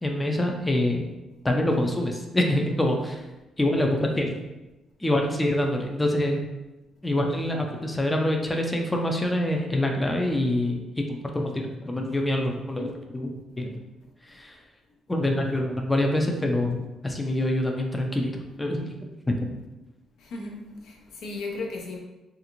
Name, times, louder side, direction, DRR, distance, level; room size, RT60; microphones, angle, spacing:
voice 1, 0.0-1.0 1.4-3.2 3.6-4.3 5.0-6.4 7.0-13.7 14.3-14.6 15.1-18.3 18.6-19.1 19.4-19.5, left 1 dB, 15° left, 2 dB, 0.4 m, -25 dB
voice 2, 20.2-22.0, left 3 dB, 75° left, 1 dB, 0.5 m, -35 dB
2.5 x 2.4 x 2.9 m, 1.0 s
cardioid pair, 90°, 0 cm